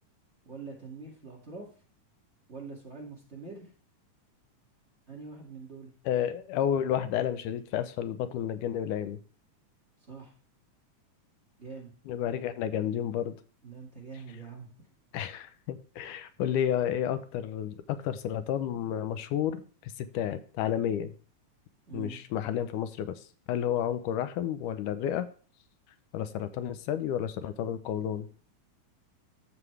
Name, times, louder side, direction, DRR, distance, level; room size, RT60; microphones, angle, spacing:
voice 1, 0.5-1.7 2.5-3.7 5.1-5.9 10.1-10.3 11.6-11.9 13.6-14.7 21.9-22.2, right 4 dB, 25° right, -2 dB, 2.1 m, -44 dB
voice 2, 6.1-9.2 12.1-13.4 15.1-21.1 21.9-25.3 26.1-28.3, left 10 dB, 90° left, 11 dB, 2.3 m, -31 dB
13.0 x 7.1 x 3.3 m, 0.41 s
omnidirectional pair, 3.6 m